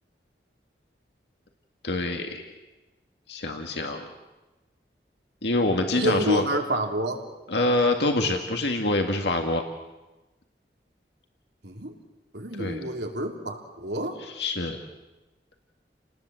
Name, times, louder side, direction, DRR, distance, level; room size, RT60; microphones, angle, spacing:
voice 1, 1.8-2.6 3.3-4.1 5.4-6.4 7.5-9.6 12.6-12.8 14.2-14.8, left 2 dB, 80° left, 3 dB, 2.0 m, -25 dB
voice 2, 5.9-7.2 11.6-11.9 12.3-14.2, right 1 dB, 75° right, 2 dB, 3.1 m, -28 dB
29.0 x 19.5 x 7.8 m, 1.1 s
head